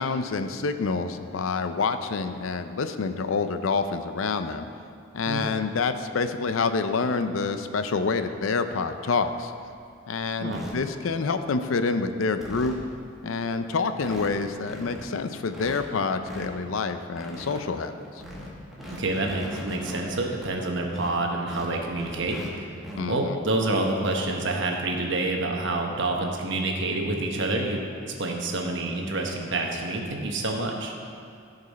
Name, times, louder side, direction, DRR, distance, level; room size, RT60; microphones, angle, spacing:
voice 1, 0.0-4.7 5.1-9.5 10.1-12.7 13.2-17.9 23.0-23.4, left 4 dB, 80° left, 9 dB, 0.5 m, -27 dB
sound 1, 9.6-9.9 10.5-10.7 11.4-11.7 12.1-12.2 12.4-12.8 13.4-13.5 13.7-13.8 14.0-14.3 14.5-15.0 15.5-16.5 16.9-17.6 18.0-20.5 20.9-22.5 22.7-23.0 24.4-24.5 24.9-25.0 26.2-26.4, left 1 dB, ahead, 1.4 m, -39 dB
voice 2, 18.9-22.5 23.1-30.9, right 2 dB, 65° right, 2 dB, 1.1 m, -28 dB
15.0 x 5.3 x 4.1 m, 2.4 s
head